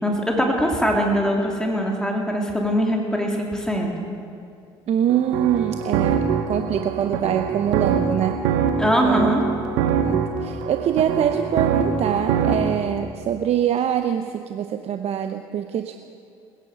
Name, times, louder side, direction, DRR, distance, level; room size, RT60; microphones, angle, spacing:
voice 1, 0.0-3.9 8.8-9.4, equal, 5° left, 0 dB, 3.1 m, -22 dB
voice 2, 4.9-8.4 9.0-9.3 10.0-16.0, right 9 dB, 55° right, 7 dB, 0.8 m, -24 dB
sound 1, 5.1-12.8, right 7 dB, 80° right, 1.3 m, -24 dB
20.5 x 10.5 x 6.5 m, 2.4 s
hypercardioid pair, 60°, 13 cm